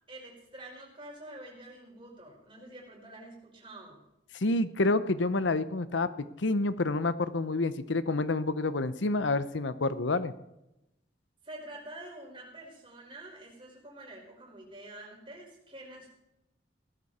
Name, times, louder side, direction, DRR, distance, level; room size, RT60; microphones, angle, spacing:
voice 1, 0.1-4.0 11.4-16.1, right 1 dB, 25° right, -2 dB, 5.2 m, -47 dB
voice 2, 4.3-10.3, left 2 dB, 80° left, 14 dB, 0.8 m, -28 dB
17.5 x 14.0 x 4.3 m, 0.86 s
head